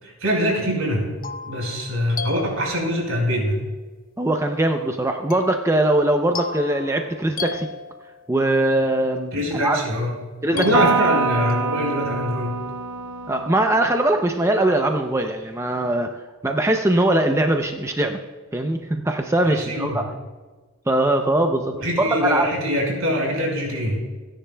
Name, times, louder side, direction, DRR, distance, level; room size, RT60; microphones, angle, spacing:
voice 1, 0.0-1.1 1.5-3.6 9.3-10.1 10.5-12.5 19.4-20.0 21.8-24.0, equal, 75° right, -1 dB, 5.1 m, -23 dB
sound 1, 0.7-3.2 5.3-8.5 10.6-11.7, left 5 dB, 40° left, 0.7 m, -36 dB
voice 2, 4.2-7.7 8.3-9.8 10.4-10.6 13.3-16.1 16.4-18.2 18.5-20.1 20.9-22.5, right 1 dB, 15° right, 4 dB, 0.5 m, -21 dB
Electric guitar, 10.7-14.3, right 5 dB, 60° right, 1.0 m, -26 dB
29.5 x 10.0 x 2.3 m, 1.3 s
head